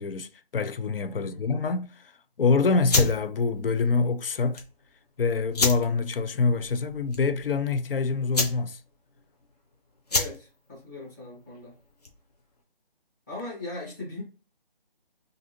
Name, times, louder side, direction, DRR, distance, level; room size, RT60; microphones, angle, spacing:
voice 1, 0.0-2.1 2.4-4.6 5.2-8.8, left 4 dB, 65° left, 0.5 m, -25 dB
sound 1, 2.8-12.3, left 3 dB, 40° left, 0.8 m, -32 dB
voice 2, 10.1-11.7 13.3-14.2, left 2 dB, 20° left, 1.7 m, -39 dB
3.6 x 2.6 x 2.9 m
figure-of-eight pair, 170°, 30 cm